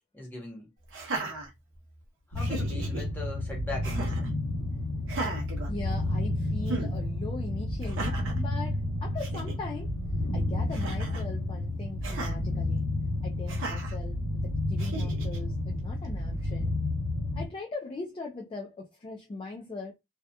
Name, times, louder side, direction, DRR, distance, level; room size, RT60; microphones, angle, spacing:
voice 1, 0.1-0.7 2.3-4.4, left 2 dB, 10° left, 0.9 m, -39 dB
Laughter, 0.9-2.0 2.4-3.0 3.8-4.3 5.0-6.3 6.7-6.9 7.8-8.4 8.9-9.0 9.2-9.6 10.7-11.3 12.0-12.4 13.5-14.0 14.8-15.4, right 3 dB, 55° right, 0.6 m, -37 dB
sound 1, 2.3-17.4, left 1 dB, 60° left, 1.0 m, -31 dB
voice 2, 5.7-9.9 10.3-12.9 13.2-16.8 17.3-19.9, left 3 dB, 25° left, 0.3 m, -40 dB
2.7 x 2.2 x 2.2 m
head